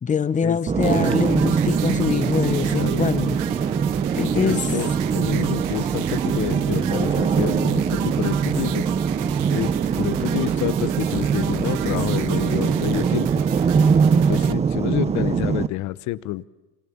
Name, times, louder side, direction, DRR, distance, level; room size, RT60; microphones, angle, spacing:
voice 1, 0.0-3.4 4.1-4.7, left 6 dB, 15° left, 14 dB, 1.3 m, -24 dB
sound 1, 0.7-15.7, right 6 dB, 15° right, 0.8 m, -22 dB
sound 2, 0.8-14.5, right 14 dB, 45° right, 1.6 m, -34 dB
voice 2, 2.4-3.0 4.2-8.8 9.5-13.3 14.3-16.4, left 17 dB, 40° left, 18 dB, 1.1 m, -28 dB
27.5 x 26.5 x 7.2 m, 1.1 s
supercardioid pair, 125°, 43 cm